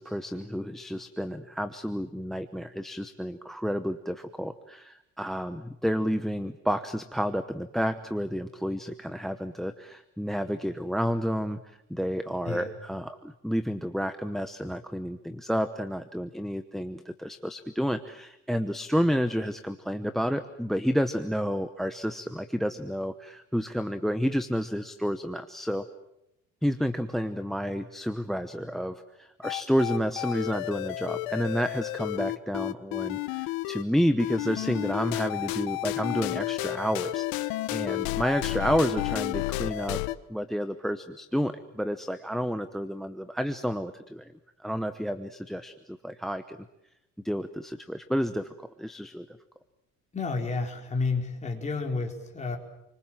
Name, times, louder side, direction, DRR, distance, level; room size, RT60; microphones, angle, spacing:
voice 1, 0.0-25.8 26.6-40.0 40.3-44.3 44.6-46.6 47.2-49.3, equal, ahead, 10 dB, 1.0 m, -30 dB
sound 1, 29.4-33.8 34.2-40.1, left 18 dB, 90° left, 1.2 m, -31 dB
voice 2, 50.1-52.6, left 4 dB, 20° left, 2 dB, 4.5 m, -30 dB
29.5 x 24.5 x 7.6 m, 0.85 s
cardioid pair, 150°, 35 cm